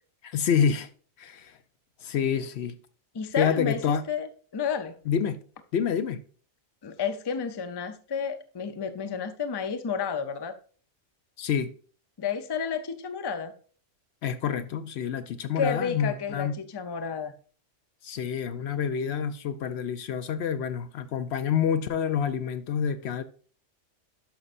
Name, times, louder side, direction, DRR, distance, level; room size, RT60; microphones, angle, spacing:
voice 1, 0.2-0.9 1.2-1.6 2.0-2.7 3.4-4.0 5.1-5.4 5.7-6.2 11.4-11.7 14.2-16.5 18.0-23.2, left 7 dB, 65° left, 0.8 m, -27 dB
voice 2, 3.1-5.0 6.8-10.5 12.2-13.5 15.6-17.3, left 6 dB, 30° left, 0.5 m, -31 dB
11.5 x 5.4 x 2.5 m
omnidirectional pair, 1.2 m